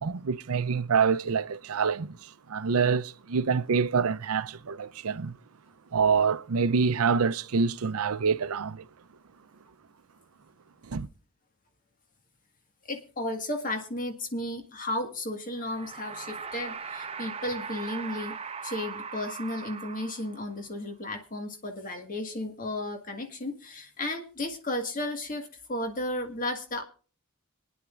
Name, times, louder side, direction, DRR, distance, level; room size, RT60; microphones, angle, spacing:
voice 1, 0.0-2.1 2.5-5.4 5.9-8.8 10.9-11.1, right 5 dB, 85° right, 0.6 m, -26 dB
voice 2, 12.9-18.4 18.6-26.8, left 1 dB, 40° left, 1.7 m, -34 dB
sound 1, 15.5-20.6, right 6 dB, 30° right, 0.8 m, -39 dB
25.5 x 9.6 x 2.5 m
head